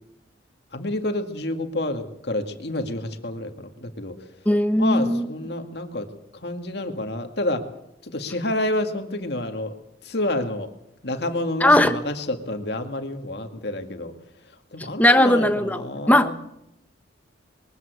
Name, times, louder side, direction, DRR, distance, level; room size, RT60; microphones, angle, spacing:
voice 1, 0.7-4.2 4.8-6.1 6.3-7.7 8.0-9.8 10.0-10.7 11.0-14.1 14.7-16.3, left 1 dB, 60° left, 5 dB, 2.1 m, -29 dB
voice 2, 4.5-5.3 11.6-12.0 14.8-16.3, left 1 dB, 10° left, 9 dB, 1.1 m, -18 dB
22.0 x 14.5 x 8.2 m, 0.80 s
head